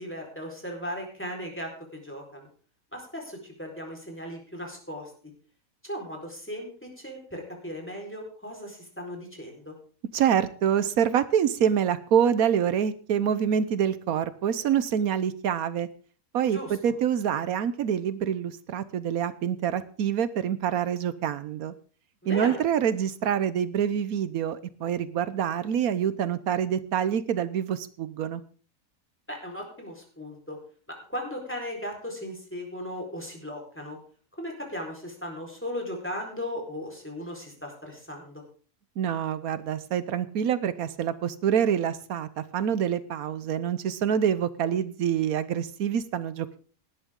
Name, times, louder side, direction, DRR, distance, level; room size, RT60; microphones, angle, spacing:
voice 1, 0.0-2.5 2.9-5.1 5.8-9.7 16.4-16.8 22.2-22.6 29.3-30.6 31.1-34.0 34.4-38.4, equal, 10° left, 0 dB, 4.3 m, -37 dB
voice 2, 10.1-15.9 16.3-21.7 22.3-28.4 39.0-46.6, right 8 dB, 80° right, 14 dB, 1.3 m, -26 dB
18.5 x 11.0 x 3.7 m, 0.41 s
omnidirectional pair, 1.5 m